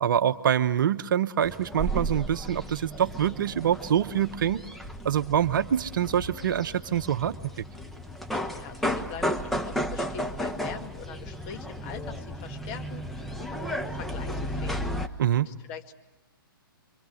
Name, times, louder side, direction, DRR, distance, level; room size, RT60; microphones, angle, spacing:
voice 1, 0.0-4.6 5.0-7.6 15.2-15.5, right 9 dB, 60° right, 12 dB, 1.0 m, -25 dB
sound 1, 1.4-15.1, equal, ahead, 1.2 m, -34 dB
voice 2, 8.5-14.8 15.4-15.9, left 8 dB, 35° left, 5 dB, 2.1 m, -43 dB
27.0 x 25.0 x 6.4 m, 1.1 s
hypercardioid pair, 125°, 12 cm